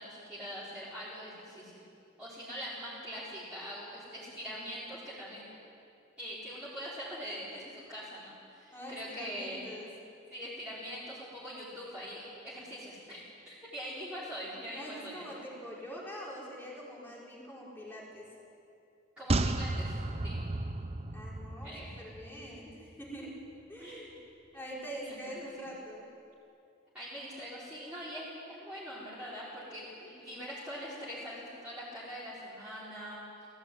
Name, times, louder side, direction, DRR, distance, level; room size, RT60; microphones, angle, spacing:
voice 1, 0.0-1.8 2.2-5.5 6.2-7.6 7.9-9.7 10.3-15.2 19.2-20.4 21.6-21.9 23.8-24.2 25.0-25.2 26.9-33.2, equal, 5° right, -12 dB, 4.7 m, -43 dB
voice 2, 8.7-9.9 14.7-18.2 21.1-21.7 22.0-23.3 23.7-24.2 24.5-26.0, equal, 10° left, -5 dB, 4.8 m, -44 dB
sound 1, 19.3-22.7 23.0-23.1, right 2 dB, 30° right, 0.7 m, -33 dB
17.5 x 16.5 x 9.4 m, 2.6 s
head